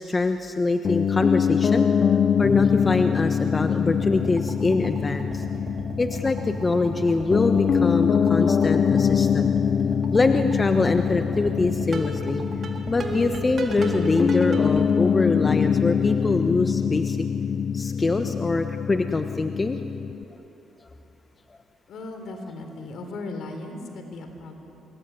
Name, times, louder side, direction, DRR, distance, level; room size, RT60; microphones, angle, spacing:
voice 1, 0.0-1.9 2.4-5.4 6.0-9.5 10.1-12.4 12.9-17.2 17.7-19.8, left 3 dB, 25° left, 7 dB, 1.2 m, -24 dB
Piano, 0.8-20.2, left 7 dB, 45° left, 0.6 m, -24 dB
sound 1, 4.0-14.9, right 3 dB, 45° right, 3.9 m, -37 dB
voice 2, 21.9-24.6, left 2 dB, 70° left, 5 dB, 4.0 m, -37 dB
26.5 x 21.5 x 9.6 m, 2.9 s
cardioid pair, 90°, 0 cm